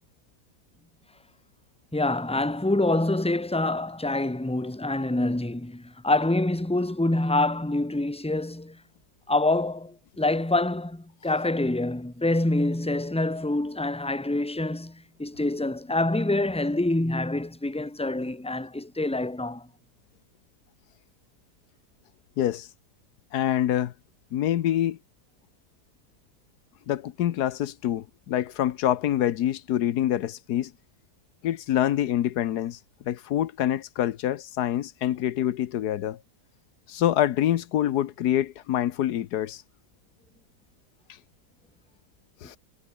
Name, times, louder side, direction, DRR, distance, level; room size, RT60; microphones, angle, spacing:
voice 1, 1.9-8.8 9.3-19.7, left 2 dB, 5° left, 1.6 m, -26 dB
voice 2, 22.4-22.7 23.3-23.9 24.3-25.0 26.9-30.7 31.4-32.8 33.1-36.2 36.9-39.6 42.4-42.6, left 11 dB, 80° left, 1.4 m, -26 dB
omnidirectional pair, 1.7 m